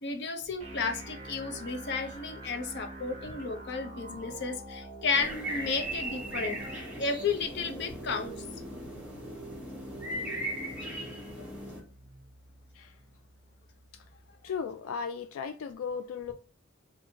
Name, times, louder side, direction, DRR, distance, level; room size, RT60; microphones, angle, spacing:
voice 1, 0.0-6.6 7.0-8.4 11.4-11.5, left 4 dB, 55° left, 0.7 m, -33 dB
sound 1, 0.6-14.6, right 2 dB, 30° right, 1.0 m, -46 dB
sound 2, 5.1-11.8, equal, 5° right, 1.0 m, -38 dB
voice 2, 14.4-16.3, left 6 dB, 85° left, 0.3 m, -36 dB
4.3 x 2.7 x 2.7 m
head